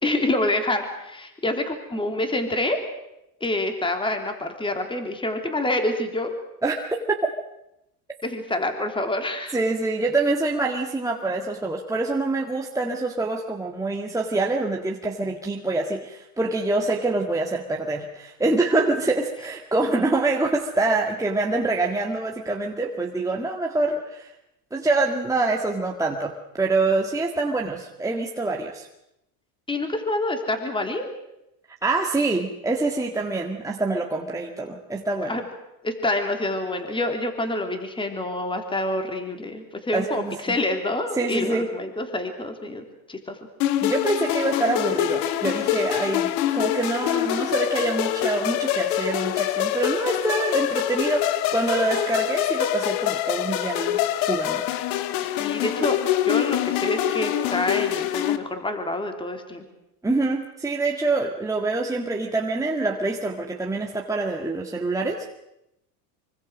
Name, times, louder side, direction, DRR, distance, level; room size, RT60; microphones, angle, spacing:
voice 1, 0.0-2.8 3.4-6.3 8.2-9.6 29.7-31.1 35.2-35.5 35.8-43.4 55.4-56.0 56.2-59.6, left 1 dB, 10° left, 5 dB, 3.5 m, -27 dB
voice 2, 9.5-24.3 24.7-28.9 31.8-35.4 39.9-40.5 41.2-41.7 43.8-54.0 54.3-54.6 60.0-65.4, right 2 dB, 5° right, 0 dB, 1.9 m, -25 dB
sound 1, 43.6-58.4, left 13 dB, 70° left, 1.8 m, -25 dB
25.0 x 24.5 x 6.4 m, 0.86 s
supercardioid pair, 120°, 45 cm